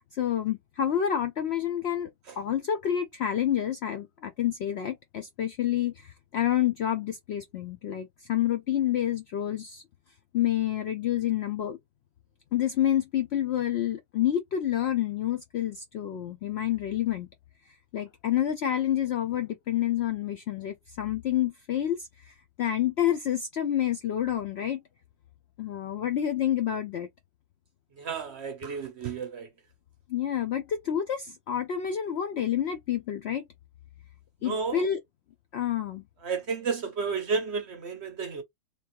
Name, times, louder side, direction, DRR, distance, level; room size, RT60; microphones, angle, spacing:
voice 1, 0.1-2.1 2.4-9.8 10.3-11.8 12.5-17.3 17.7-24.8 25.6-27.1 30.1-33.4 34.4-35.0 35.5-36.0, left 10 dB, 70° left, 0.6 m, -28 dB
voice 2, 28.0-29.5 34.4-34.8 36.2-38.4, right 5 dB, 60° right, 0.7 m, -32 dB
3.4 x 3.0 x 2.9 m
omnidirectional pair, 1.7 m